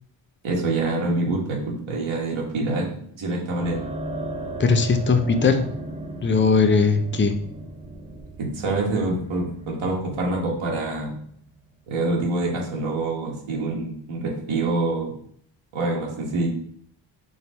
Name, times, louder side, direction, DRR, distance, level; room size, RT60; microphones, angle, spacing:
voice 1, 0.4-3.8 8.4-11.2 11.9-15.1 15.7-16.5, right 2 dB, 80° right, -2 dB, 1.4 m, -26 dB
sound 1, 3.6-11.9, right 2 dB, 15° right, 0.8 m, -37 dB
voice 2, 4.6-5.7 6.2-7.3, left 4 dB, 25° left, 7 dB, 0.6 m, -19 dB
3.9 x 3.1 x 4.0 m, 0.64 s
cardioid pair, 55°, 48 cm